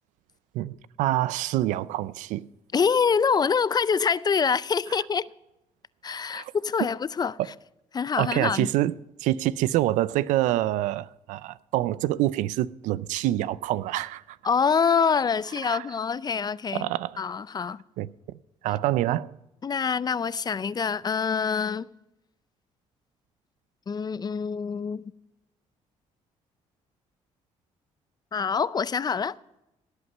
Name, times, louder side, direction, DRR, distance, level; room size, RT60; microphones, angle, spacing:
voice 1, 0.5-2.4 6.3-6.5 8.2-8.9 9.2-14.4 15.7-15.8 16.7-17.2 18.0-18.1 18.6-19.3, right 15 dB, 90° right, 0.4 m, -26 dB
voice 2, 2.7-5.3 6.0-7.4 7.9-8.7 14.4-16.9 17.2-17.8 19.6-21.9 23.9-25.1 28.3-29.4, left 6 dB, 35° left, 0.5 m, -25 dB
17.0 x 8.2 x 5.4 m
cardioid pair, 80°, 12 cm